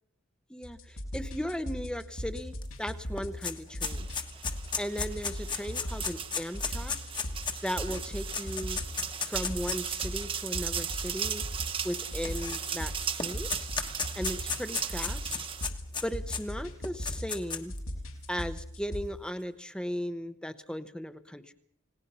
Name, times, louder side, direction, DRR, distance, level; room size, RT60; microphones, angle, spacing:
voice 1, 0.5-4.1 4.8-7.0 7.6-8.8 9.2-11.4 11.8-13.7 14.1-15.4 16.0-17.7 18.3-21.5, equal, 5° left, 11 dB, 0.9 m, -37 dB
sound 1, 0.6-19.0, equal, 85° left, 5.0 m, -39 dB
sound 2, 2.6-2.7 3.0-9.9 10.7-10.8 11.8-12.9 13.2-16.4 16.8-17.8, left 6 dB, 20° left, 1.4 m, -34 dB
sound 3, 3.9-15.7, right 8 dB, 25° right, 1.0 m, -37 dB
29.5 x 18.5 x 5.6 m, 0.65 s
head